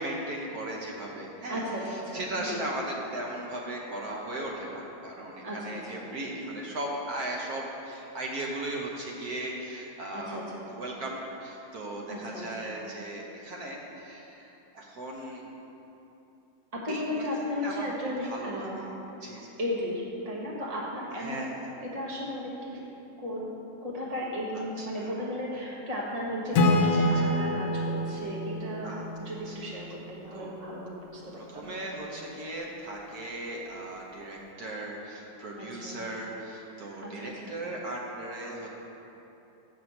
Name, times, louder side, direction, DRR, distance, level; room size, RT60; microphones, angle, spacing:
voice 1, 0.0-15.4 16.9-17.3 17.6-18.8 19.2-19.6 21.1-21.7 24.8-25.1 26.9-27.2 28.8-29.1 29.4-29.8 30.3-30.6 31.4-38.7, right 1 dB, 65° right, -1 dB, 1.4 m, -37 dB
voice 2, 1.5-2.6 5.4-6.0 10.1-10.7 12.1-12.7 16.7-18.8 19.6-21.5 21.8-22.8 23.2-23.5 23.8-28.9 29.2-31.7 35.6-36.0 36.7-37.6, equal, 25° right, -4 dB, 1.3 m, -35 dB
Acoustic guitar / Strum, 26.5-30.1, left 1 dB, 75° left, 1.3 m, -27 dB
7.1 x 6.0 x 7.1 m, 3.0 s
omnidirectional pair, 1.8 m